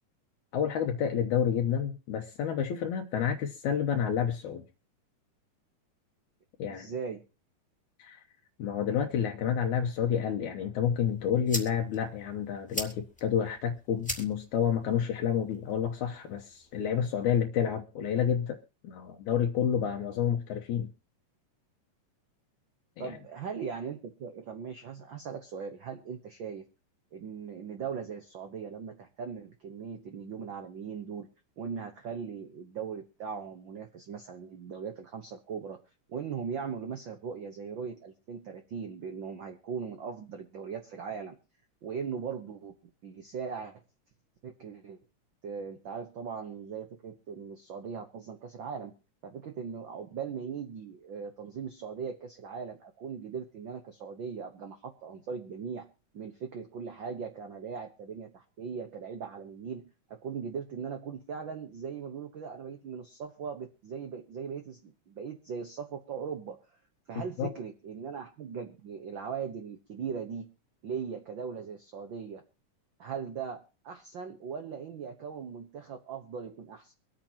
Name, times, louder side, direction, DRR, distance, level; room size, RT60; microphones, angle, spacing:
voice 1, 0.5-4.6 6.6-6.9 8.0-8.2 8.6-20.9 23.0-23.1 67.4-67.5, left 8 dB, 75° left, 2.1 m, -29 dB
voice 2, 6.6-7.2 23.0-26.6 27.1-31.3 31.6-35.8 36.1-41.3 41.8-42.7 43.0-43.8 44.4-45.0 45.4-48.9 49.2-55.9 56.1-66.6 67.1-70.5 70.8-72.4 73.0-76.9, right 6 dB, 80° right, 1.0 m, -39 dB
sound 1, 10.9-16.9, left 1 dB, 5° left, 1.5 m, -42 dB
24.5 x 8.8 x 2.8 m
omnidirectional pair, 3.7 m